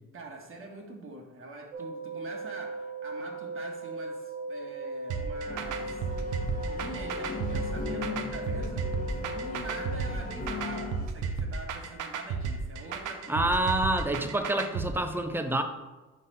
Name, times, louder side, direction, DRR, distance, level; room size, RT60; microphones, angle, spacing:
voice 1, 0.1-9.0 9.2-13.6, right 2 dB, 45° right, 2 dB, 1.3 m, -44 dB
sound 1, 1.7-10.1, right 2 dB, 60° right, 1.0 m, -38 dB
sound 2, 5.1-14.9, right 5 dB, 85° right, 0.7 m, -33 dB
sound 3, 5.5-11.1, left 3 dB, 30° left, 1.2 m, -38 dB
voice 2, 13.3-15.6, right 1 dB, 5° right, 7 dB, 0.6 m, -27 dB
5.5 x 3.9 x 5.3 m, 1.2 s
cardioid pair, 90°, 30 cm